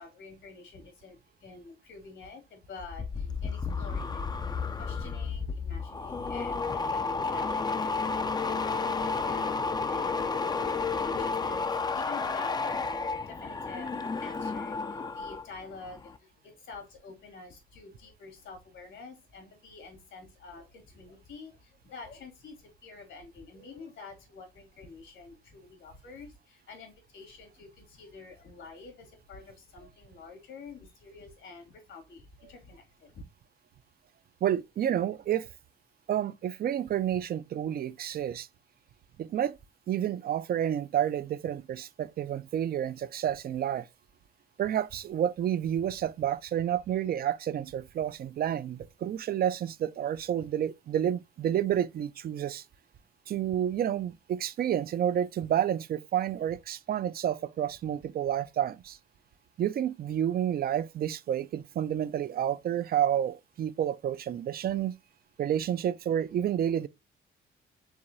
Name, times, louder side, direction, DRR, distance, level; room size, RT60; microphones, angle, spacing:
voice 1, 0.0-4.2 4.5-8.1 8.4-12.7 13.3-33.2, left 4 dB, 75° left, 2.3 m, -48 dB
sound 1, 2.8-15.5 15.8-16.2, left 4 dB, 20° left, 0.4 m, -32 dB
voice 2, 34.4-35.5 36.1-38.5 39.2-39.6 39.9-43.9 44.6-52.6 53.3-59.0 59.6-64.9 65.4-66.9, right 10 dB, 50° right, 0.4 m, -30 dB
4.8 x 3.7 x 2.6 m
cardioid pair, 90°, 20 cm